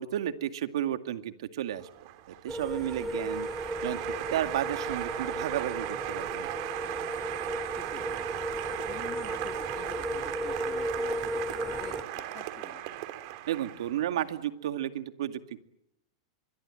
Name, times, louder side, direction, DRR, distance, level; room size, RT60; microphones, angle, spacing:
voice 1, 0.0-1.9 2.3-3.5 3.8-6.5 13.5-15.6, right 11 dB, 75° right, 9 dB, 2.2 m, -33 dB
Applause, 1.7-14.2, right 15 dB, 50° right, 3.2 m, -37 dB
sound 1, 2.5-12.0, right 1 dB, 5° right, 2.1 m, -35 dB
voice 2, 3.0-3.4 7.7-8.5 8.8-13.0, left 11 dB, 35° left, 7 dB, 2.5 m, -48 dB
24.5 x 22.5 x 9.1 m, 0.78 s
supercardioid pair, 150°, 3 cm